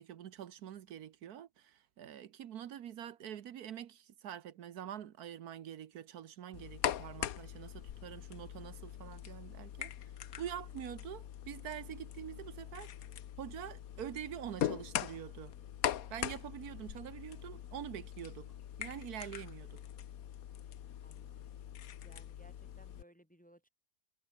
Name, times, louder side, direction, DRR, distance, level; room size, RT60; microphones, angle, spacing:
voice 1, 0.0-9.9 10.4-12.9 13.4-15.5 16.1-18.5 18.8-19.8, right 10 dB, 80° right, 1.4 m, -45 dB
sound 1, 6.5-23.0, left 10 dB, 70° left, 1.3 m, -42 dB
voice 2, 21.0-21.5 22.0-23.7, right 1 dB, 5° left, 1.7 m, -63 dB
omnidirectional pair, 1.6 m